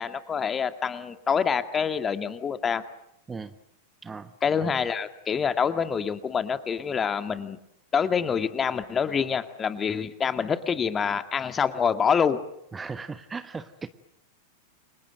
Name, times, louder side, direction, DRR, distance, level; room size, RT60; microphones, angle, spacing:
voice 1, 0.0-2.8 4.4-7.6 7.9-12.4, left 6 dB, 20° left, 10 dB, 2.1 m, -26 dB
voice 2, 12.7-13.9, right 4 dB, 15° right, 12 dB, 1.3 m, -37 dB
30.0 x 25.5 x 7.8 m, 0.79 s
figure-of-eight pair, 90°, 0 cm